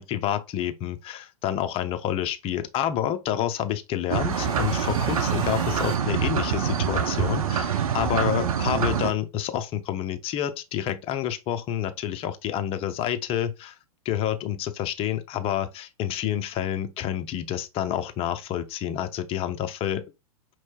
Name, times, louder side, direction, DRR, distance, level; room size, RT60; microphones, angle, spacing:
voice 1, 0.0-13.8 14.0-20.0, left 10 dB, 30° left, 0.7 m, -28 dB
sound 1, 4.1-9.1, right 7 dB, 80° right, 0.8 m, -25 dB
sound 2, 4.3-6.8, right 3 dB, 25° right, 1.9 m, -39 dB
5.3 x 3.1 x 2.3 m
hypercardioid pair, 115°, 18 cm